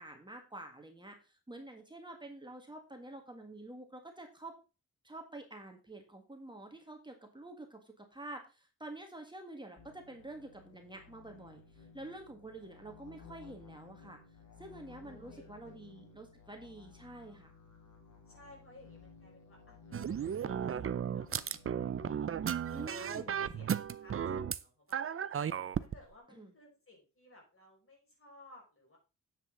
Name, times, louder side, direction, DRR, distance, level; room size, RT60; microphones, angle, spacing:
voice 1, 0.0-4.5 5.0-11.6 11.9-14.2 14.6-17.5 22.7-23.3 26.4-26.5, right 2 dB, 15° right, 3 dB, 1.8 m, -48 dB
sound 1, 9.8-23.9, left 5 dB, 65° left, 4.6 m, -57 dB
voice 2, 15.0-15.8 18.3-22.4 22.7-25.5 25.8-29.0, left 2 dB, 45° left, -1 dB, 5.7 m, -59 dB
sound 2, 19.9-24.6 24.9-26.0, right 8 dB, 45° right, 0.6 m, -35 dB
9.7 x 7.9 x 3.9 m, 0.31 s
wide cardioid pair, 110°, 32 cm